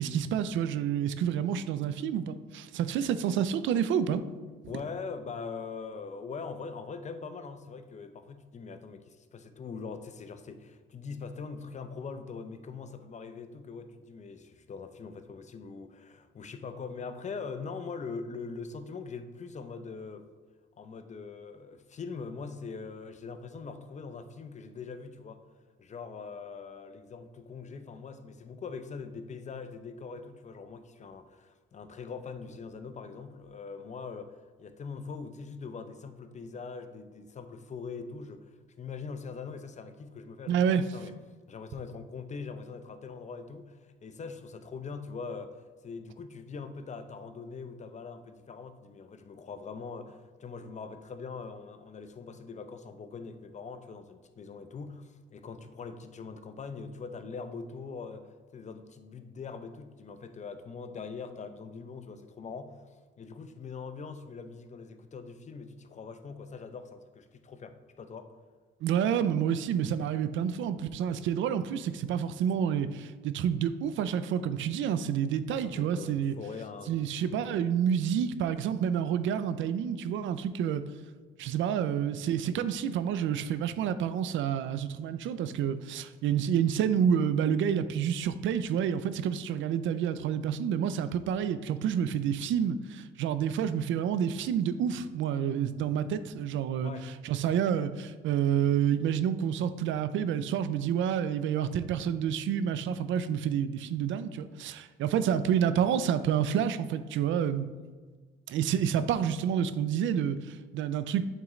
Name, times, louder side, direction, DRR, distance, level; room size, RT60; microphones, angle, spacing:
voice 1, 0.0-4.2 40.5-40.8 68.8-76.3 76.9-80.8 81.4-96.9 97.2-107.7 108.5-111.3, right 8 dB, 75° right, 13 dB, 0.4 m, -29 dB
voice 2, 4.7-20.3 20.8-25.4 25.8-38.5 38.8-41.1 41.5-62.9 63.2-68.3 75.5-77.7 96.8-97.2, left 5 dB, 35° left, 9 dB, 0.6 m, -42 dB
8.9 x 3.7 x 3.1 m, 1.5 s
cardioid pair, 90°, 20 cm